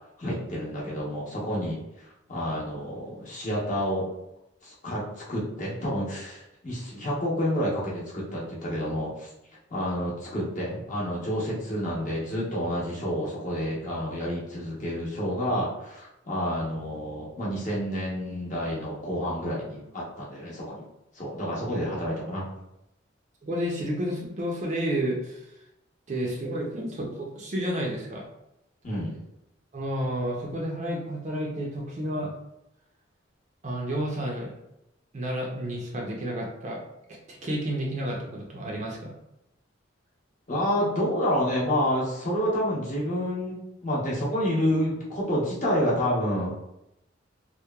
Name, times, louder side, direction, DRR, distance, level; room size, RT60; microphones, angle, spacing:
voice 1, 0.2-4.1 4.6-9.3 9.7-20.8 21.1-22.4 28.8-29.1 40.5-46.7, equal, 40° left, -6 dB, 0.7 m, -29 dB
voice 2, 23.4-25.5 26.1-28.3 29.7-32.3 33.6-34.5 35.1-36.8 37.3-39.1, equal, 35° right, -1 dB, 0.4 m, -31 dB
2.8 x 2.1 x 2.2 m, 0.85 s
head